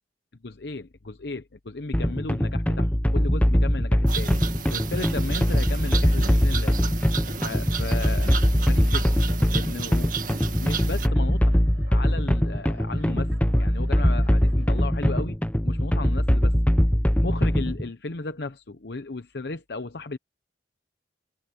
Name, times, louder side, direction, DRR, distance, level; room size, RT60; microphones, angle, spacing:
voice 1, 0.4-4.3 4.7-7.0 7.4-8.4 8.7-9.1 9.5-10.2 10.6-11.6 11.9-13.3 13.6-15.4 15.6-16.6 17.2-20.2, left 3 dB, 65° left, 0.9 m, -35 dB
sound 1, 1.9-17.9, equal, 10° left, 0.8 m, -22 dB
sound 2, 4.1-11.1, right 6 dB, 45° right, 1.9 m, -33 dB
sound 3, 6.7-15.1, right 2 dB, 75° right, 6.0 m, -53 dB
head